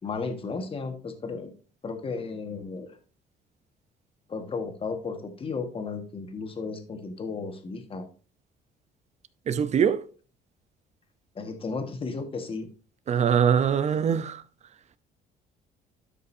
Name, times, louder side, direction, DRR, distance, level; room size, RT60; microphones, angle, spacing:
voice 1, 0.0-1.5 1.8-3.0 4.3-8.1 11.3-12.7, left 4 dB, 35° left, 1.6 m, -34 dB
voice 2, 9.5-10.0 13.1-14.4, right 7 dB, 40° right, 0.7 m, -23 dB
12.5 x 5.4 x 2.7 m
cardioid pair, 110°, 17 cm